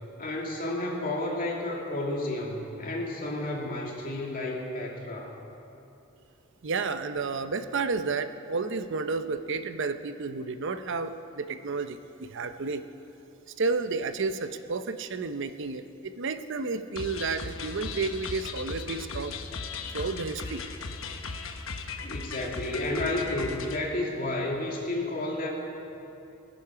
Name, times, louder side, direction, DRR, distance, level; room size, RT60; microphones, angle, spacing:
voice 1, 0.2-5.3 22.0-25.5, left 2 dB, 45° left, -2 dB, 2.5 m, -31 dB
voice 2, 6.6-12.8 13.6-19.4 19.9-20.6, right 4 dB, 65° right, 10 dB, 0.6 m, -31 dB
sound 1, 17.0-23.8, left 4 dB, 75° left, 1.1 m, -37 dB
21.0 x 9.6 x 5.8 m, 2.8 s
head